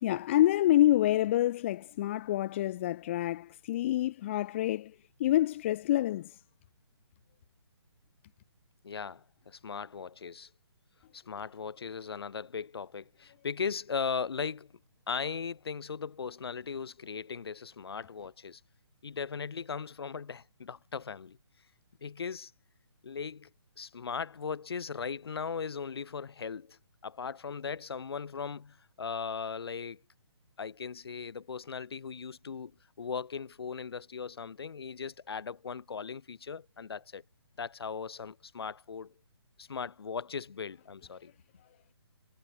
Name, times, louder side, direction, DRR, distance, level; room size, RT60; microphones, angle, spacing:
voice 1, 0.0-4.9 5.2-6.4, left 14 dB, 25° left, 1.2 m, -27 dB
voice 2, 8.8-10.5 11.1-14.7 15.1-18.6 19.0-21.4 22.0-22.5 23.0-23.5 23.8-30.0 30.6-37.2 37.6-39.1 39.6-41.3, left 6 dB, 65° left, 4.1 m, -38 dB
hypercardioid pair, 165°, 14 cm